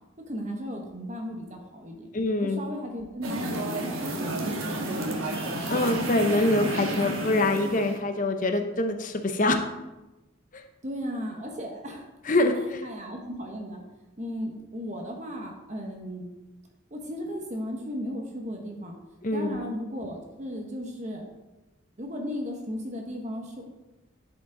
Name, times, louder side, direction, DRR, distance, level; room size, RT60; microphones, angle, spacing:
voice 1, 0.3-2.1 2.4-5.5 10.8-12.1 12.8-13.8 14.2-16.3 16.9-19.0 19.3-21.2 22.0-23.6, equal, 35° right, 1 dB, 0.9 m, -35 dB
voice 2, 2.1-2.6 5.7-9.6 10.5-10.6 12.2-12.9 19.2-19.6, left 2 dB, 40° left, 6 dB, 0.7 m, -25 dB
sound 1, 3.2-8.0, right 1 dB, 80° right, 1.3 m, -31 dB
10.5 x 5.1 x 3.8 m, 1.0 s
head